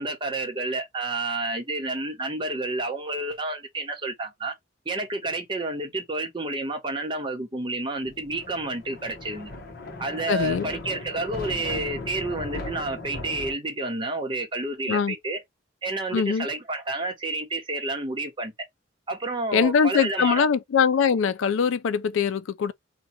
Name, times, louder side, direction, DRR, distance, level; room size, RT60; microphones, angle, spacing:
voice 1, 0.0-4.5 4.9-9.5 10.0-15.4 15.8-18.5 19.1-20.4, right 2 dB, 25° right, 0.9 m, -30 dB
Thunder, 8.0-13.5, left 2 dB, 50° left, 0.9 m, -37 dB
voice 2, 10.3-10.7 14.9-15.2 16.1-16.5 19.5-22.7, left 6 dB, 75° left, 0.4 m, -22 dB
2.8 x 2.2 x 4.1 m
head